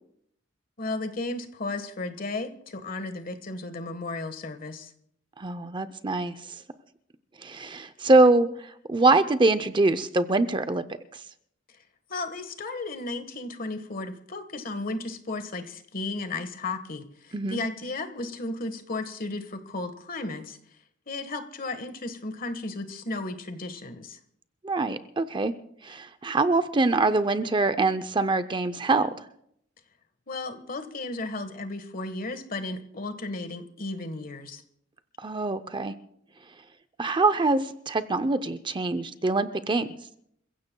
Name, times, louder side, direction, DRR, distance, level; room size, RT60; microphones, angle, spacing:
voice 1, 0.8-4.9 12.1-20.6 21.1-24.2 30.3-34.6, left 2 dB, 50° left, 9 dB, 1.4 m, -34 dB
voice 2, 5.4-6.6 7.4-10.8 11.1-11.2 17.3-17.6 24.6-25.5 25.8-29.3 35.2-35.9 37.0-39.9, right 3 dB, 25° right, 12 dB, 0.6 m, -24 dB
28.5 x 16.0 x 2.3 m, 0.70 s
head